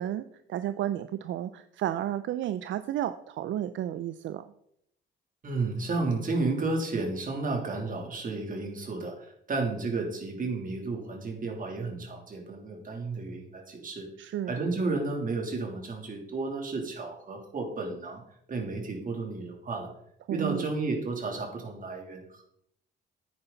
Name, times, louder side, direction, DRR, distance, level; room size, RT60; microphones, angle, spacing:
voice 1, 0.0-4.4 14.2-14.5 20.3-20.6, right 12 dB, 70° right, 12 dB, 0.5 m, -32 dB
voice 2, 5.4-14.1 14.5-18.2 18.5-19.9 20.3-22.4, right 3 dB, 45° right, 1 dB, 3.2 m, -32 dB
10.0 x 9.6 x 4.0 m, 0.72 s
cardioid pair, 90°, 20 cm